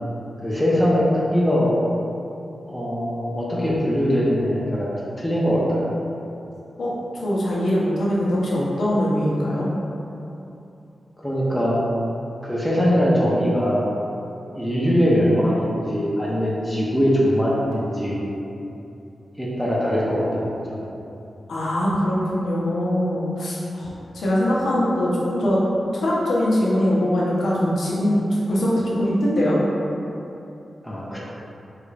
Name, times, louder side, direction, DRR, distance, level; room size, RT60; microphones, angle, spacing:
voice 1, 0.4-1.1 1.3-1.7 2.7-4.9 5.2-5.9 11.2-11.8 12.4-13.9 14.6-18.2 19.4-20.8 30.8-31.2, equal, 5° left, -7 dB, 0.7 m, -21 dB
voice 2, 6.8-9.7 21.5-23.9 24.1-25.6 25.9-28.2 28.5-29.6, left 1 dB, 85° left, -6 dB, 0.8 m, -22 dB
3.6 x 2.5 x 3.2 m, 2.8 s
cardioid pair, 60°, 0 cm